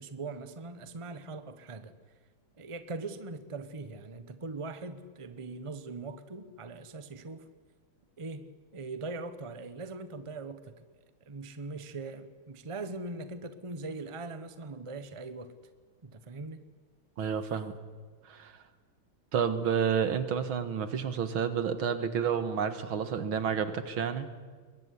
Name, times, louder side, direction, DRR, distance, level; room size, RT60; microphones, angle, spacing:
voice 1, 0.0-1.9 2.6-7.5 8.2-8.5 8.7-10.7 11.2-15.5 16.0-16.6, right 3 dB, 20° right, 11 dB, 0.9 m, -41 dB
voice 2, 17.2-17.8 18.3-18.6 19.3-24.3, right 7 dB, 70° right, 11 dB, 2.3 m, -30 dB
22.0 x 21.5 x 9.9 m, 1.5 s
omnidirectional pair, 2.3 m